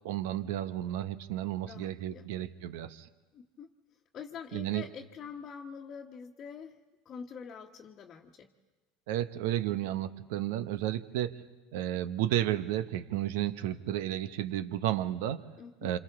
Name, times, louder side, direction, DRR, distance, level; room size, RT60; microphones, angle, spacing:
voice 1, 0.0-3.1 4.5-4.8 9.1-11.4 11.7-15.4 15.8-16.0, right 12 dB, 70° right, 13 dB, 1.0 m, -32 dB
voice 2, 1.7-2.3 3.3-3.7 4.1-6.8 7.0-8.5 15.6-15.9, left 6 dB, 40° left, 0 dB, 1.3 m, -45 dB
27.0 x 27.0 x 3.7 m, 1.2 s
hypercardioid pair, 85°, 0 cm